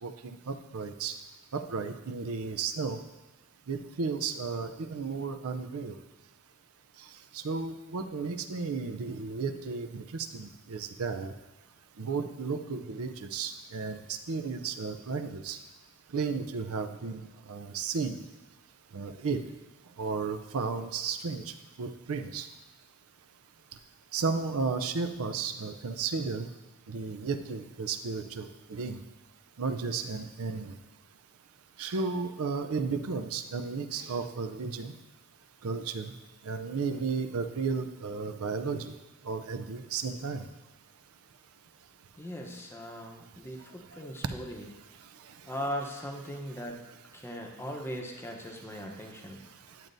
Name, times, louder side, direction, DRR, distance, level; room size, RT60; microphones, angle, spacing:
voice 1, 0.0-1.1 1.5-3.0 3.7-5.9 7.3-11.3 12.0-15.6 16.1-18.2 18.9-19.4 20.0-21.4 21.8-22.5 24.1-26.5 26.9-29.0 29.6-30.7 31.8-34.9 35.6-36.1 36.5-38.9 39.3-40.4, right 4 dB, 75° right, 9 dB, 0.5 m, -33 dB
voice 2, 42.2-44.7 45.5-46.8 47.1-49.4, equal, 10° left, 1 dB, 0.8 m, -39 dB
10.5 x 7.4 x 2.6 m, 1.1 s
head